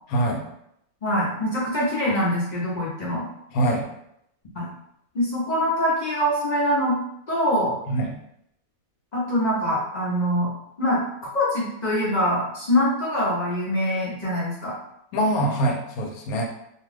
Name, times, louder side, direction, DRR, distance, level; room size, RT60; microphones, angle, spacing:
voice 1, 0.1-0.4 3.5-3.9 7.9-8.1 15.1-16.5, right 1 dB, 80° left, 2 dB, 1.1 m, -23 dB
voice 2, 1.0-3.2 4.5-4.7 5.1-7.0 7.3-7.8 9.1-10.5 10.8-14.7, equal, 45° left, -7 dB, 0.6 m, -24 dB
2.5 x 2.3 x 3.2 m, 0.76 s
omnidirectional pair, 1.5 m